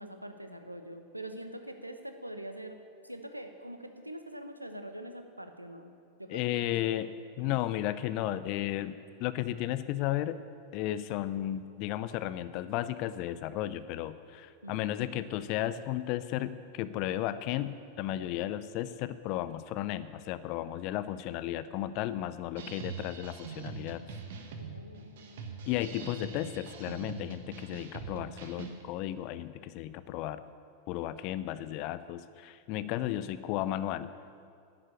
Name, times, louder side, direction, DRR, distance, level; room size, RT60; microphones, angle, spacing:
voice 1, 0.0-2.8 3.0-5.9 6.2-6.9 14.6-15.5 24.6-25.6, right 1 dB, 85° right, 7 dB, 1.0 m, -44 dB
voice 2, 6.3-10.4 10.7-24.0 25.7-30.4 30.9-34.1, left 13 dB, 40° left, 13 dB, 0.6 m, -34 dB
sound 1, 22.6-28.8, right 5 dB, 55° right, 1.4 m, -43 dB
11.0 x 7.7 x 9.1 m, 2.3 s
figure-of-eight pair, 90°, 0 cm